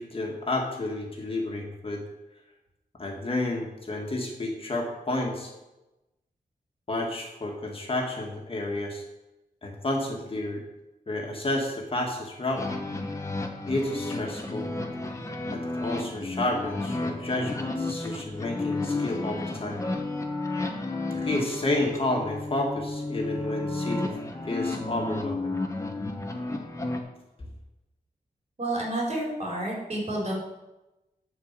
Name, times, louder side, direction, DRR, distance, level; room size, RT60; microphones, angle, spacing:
voice 1, 0.0-2.0 3.0-5.5 6.9-9.0 9.6-10.6 11.1-12.7 13.7-14.7 15.5-19.8 21.1-24.2 24.4-25.5, left 2 dB, 35° left, 0 dB, 1.9 m, -30 dB
sound 1, 12.6-27.0, left 2 dB, 20° left, 1.1 m, -32 dB
voice 2, 28.6-30.3, right 1 dB, 45° right, -3 dB, 4.1 m, -30 dB
11.5 x 4.8 x 7.4 m, 0.98 s
wide cardioid pair, 145°, 15 cm